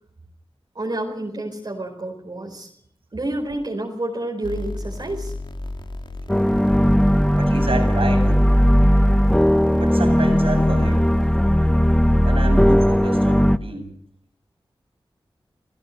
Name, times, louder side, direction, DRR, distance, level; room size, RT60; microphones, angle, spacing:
voice 1, 0.7-2.7 3.1-5.3, right 1 dB, 50° right, 0 dB, 4.7 m, -29 dB
sound 1, 4.4-11.3, left 2 dB, 55° left, 3.1 m, -35 dB
sound 2, 6.3-13.6, equal, 5° left, 1.2 m, -17 dB
voice 2, 7.3-8.5 9.7-11.0 12.2-13.9, right 2 dB, 75° right, 3 dB, 7.9 m, -29 dB
27.0 x 15.5 x 6.7 m, 0.68 s
cardioid pair, 50°, 10 cm